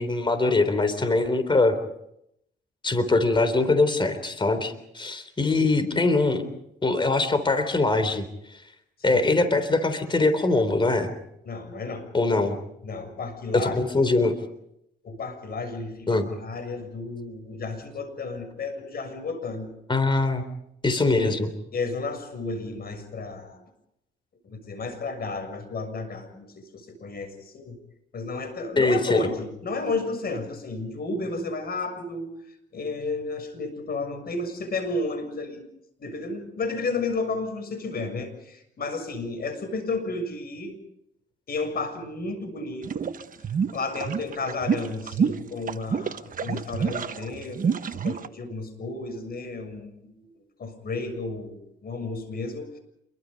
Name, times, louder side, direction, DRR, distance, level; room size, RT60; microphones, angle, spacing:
voice 1, 0.0-1.8 2.8-6.4 6.8-8.3 8.5-8.6 9.0-11.1 12.1-12.6 13.5-14.4 16.1-16.3 19.9-20.4 20.8-21.5 28.8-29.2, left 3 dB, 25° left, 10 dB, 3.7 m, -22 dB
voice 2, 11.4-12.1 12.8-13.7 15.0-19.7 21.1-21.4 21.7-23.6 24.4-27.8 28.1-32.3 32.7-35.6 36.0-40.8 41.5-43.1 43.4-50.3 50.6-52.8, left 3 dB, 50° left, 8 dB, 6.9 m, -32 dB
sound 1, 42.8-48.3, right 6 dB, 45° right, 1.2 m, -27 dB
27.5 x 23.0 x 5.3 m, 0.79 s
cardioid pair, 90°, 20 cm